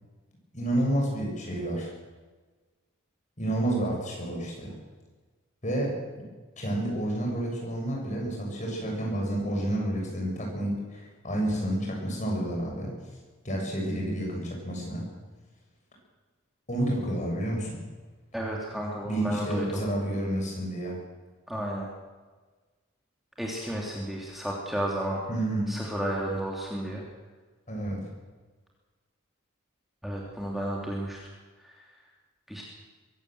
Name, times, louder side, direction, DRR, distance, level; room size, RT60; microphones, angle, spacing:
voice 1, 0.5-1.9 3.4-4.7 5.6-6.2 6.6-12.9 13.4-15.1 16.7-17.8 19.0-21.0 25.3-25.6 27.7-28.0, right 1 dB, 35° left, -1 dB, 7.3 m, -30 dB
voice 2, 18.3-19.8 21.5-21.9 23.4-25.2 25.7-27.0 30.0-31.2 31.6-31.8 32.5-32.6, right 1 dB, ahead, -3 dB, 2.8 m, -32 dB
23.0 x 16.5 x 7.8 m, 1.3 s
head